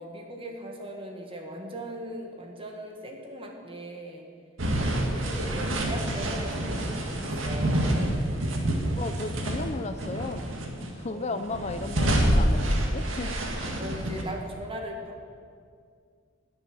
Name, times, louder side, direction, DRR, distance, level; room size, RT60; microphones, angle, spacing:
voice 1, 0.0-4.3 4.9-8.0 11.1-11.6 13.3-13.4 13.8-15.2, right 1 dB, 30° right, 1 dB, 1.8 m, -39 dB
sound 1, 4.6-9.7 10.0-10.9 11.4-14.2, right 1 dB, 85° right, 1.9 m, -27 dB
voice 2, 8.9-10.5 10.8-13.6, left 3 dB, 35° left, 8 dB, 0.5 m, -35 dB
20.0 x 7.1 x 6.2 m, 2.2 s
head